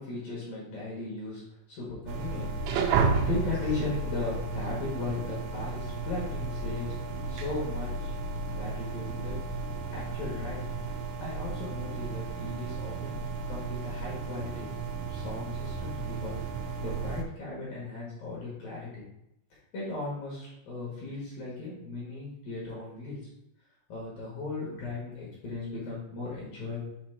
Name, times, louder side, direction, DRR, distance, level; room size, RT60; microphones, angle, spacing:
voice 1, 0.0-1.4 1.7-8.1 8.5-9.4 9.9-10.6 11.2-13.2 13.5-14.7 15.1-19.0 19.7-23.2 23.9-26.8, left 3 dB, 60° left, -6 dB, 2.6 m, -37 dB
sound 1, 2.1-17.2, right 4 dB, 85° right, 3.2 m, -33 dB
7.8 x 2.9 x 4.3 m, 0.83 s
omnidirectional pair, 5.7 m